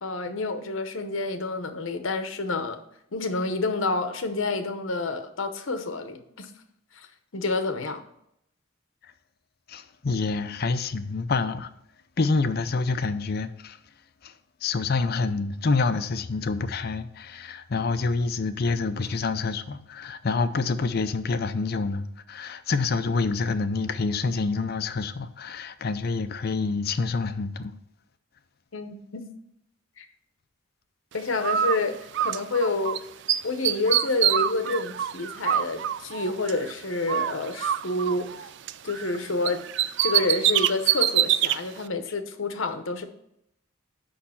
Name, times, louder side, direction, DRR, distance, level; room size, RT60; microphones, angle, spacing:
voice 1, 0.0-2.8 3.1-6.5 7.0-7.1 7.3-8.0 28.7-29.3 30.0-30.1 31.1-33.0 33.4-38.5 38.8-39.6 40.0-43.0, left 3 dB, 70° left, 0.9 m, -28 dB
voice 2, 9.7-11.7 12.2-13.8 14.2-14.3 14.6-27.7, left 4 dB, 50° left, 0.5 m, -27 dB
Bird, 31.4-33.0 33.3-36.7 37.1-39.2 39.5-41.6, right 11 dB, 60° right, 0.3 m, -25 dB
6.5 x 5.5 x 5.7 m
head